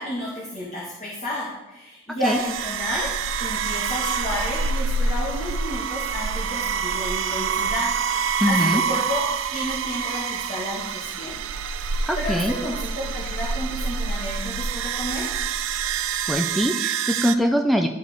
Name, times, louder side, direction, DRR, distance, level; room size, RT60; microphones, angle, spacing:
voice 1, 0.0-3.1 3.4-9.2 9.5-11.4 11.8-15.3, left 1 dB, 35° left, -6 dB, 1.5 m, -31 dB
sound 1, 2.2-17.4, right 5 dB, 80° right, 0.4 m, -27 dB
voice 2, 8.4-8.8 12.1-12.5 16.3-17.9, equal, ahead, 4 dB, 0.4 m, -22 dB
12.0 x 4.5 x 3.5 m, 1.0 s
head